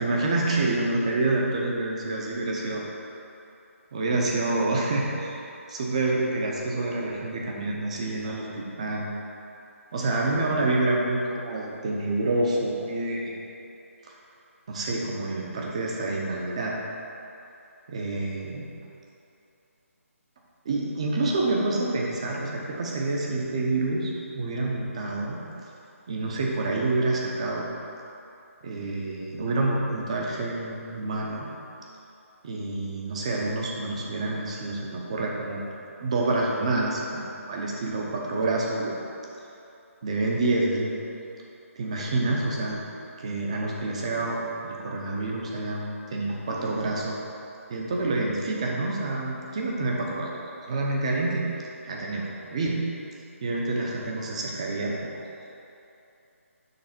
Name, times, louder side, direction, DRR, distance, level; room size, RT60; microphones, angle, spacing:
voice 1, 0.0-2.8 3.9-5.4 5.7-9.1 9.9-13.3 14.7-16.7 17.9-18.6 20.6-25.4 26.1-27.7 28.6-31.5 32.4-35.6 36.0-39.0 40.0-40.9 41.8-42.8 43.2-47.2 47.7-50.4 50.7-51.4 51.8-52.8 53.4-55.1, right 2 dB, 25° right, -2 dB, 0.7 m, -27 dB
6.6 x 3.2 x 5.9 m, 2.9 s
hypercardioid pair, 170°, 8 cm